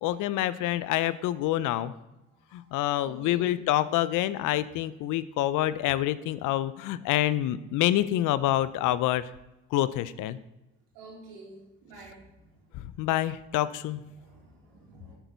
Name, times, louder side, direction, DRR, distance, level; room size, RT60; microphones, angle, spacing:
voice 1, 0.0-1.9 2.5-9.3 9.7-10.4 12.7-14.0, left 13 dB, 60° left, 16 dB, 0.6 m, -27 dB
voice 2, 2.9-3.5 10.9-12.2 14.1-15.1, right 2 dB, 80° right, -4 dB, 3.6 m, -48 dB
9.2 x 7.7 x 4.0 m, 0.95 s
hypercardioid pair, 65°, 35 cm